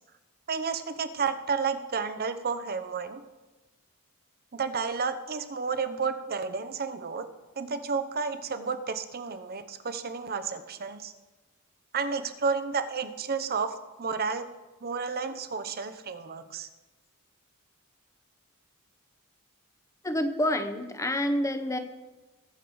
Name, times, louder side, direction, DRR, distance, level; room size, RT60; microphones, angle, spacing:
voice 1, 0.5-3.2 4.5-7.3 7.6-11.1 11.9-14.5 14.8-16.7, right 5 dB, 45° right, 10 dB, 0.8 m, -31 dB
voice 2, 20.0-21.8, left 1 dB, 15° left, 8 dB, 0.8 m, -28 dB
20.0 x 6.7 x 4.7 m, 1.2 s
head